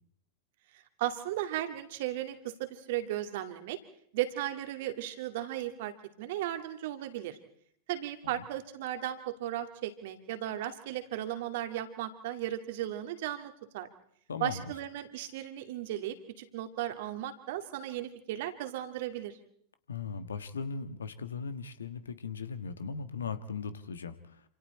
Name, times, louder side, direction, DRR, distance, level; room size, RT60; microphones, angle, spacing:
voice 1, 1.0-3.8 4.1-5.9 6.2-7.4 7.9-13.9 14.4-19.4, right 13 dB, 50° right, 7 dB, 2.4 m, -36 dB
voice 2, 14.3-14.6 19.9-24.1, left 5 dB, 70° left, 12 dB, 1.5 m, -38 dB
28.0 x 27.0 x 4.3 m, 0.65 s
figure-of-eight pair, 90°, 0 cm